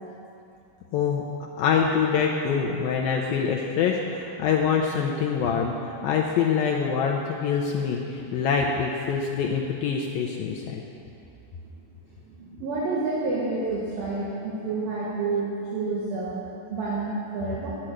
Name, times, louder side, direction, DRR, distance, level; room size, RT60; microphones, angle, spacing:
voice 1, 0.9-1.2 1.6-10.8, left 6 dB, 90° left, 0 dB, 2.1 m, -25 dB
voice 2, 12.4-16.4 16.7-17.8, right 3 dB, 65° right, -6 dB, 2.9 m, -29 dB
11.0 x 8.6 x 7.8 m, 2.7 s
omnidirectional pair, 5.0 m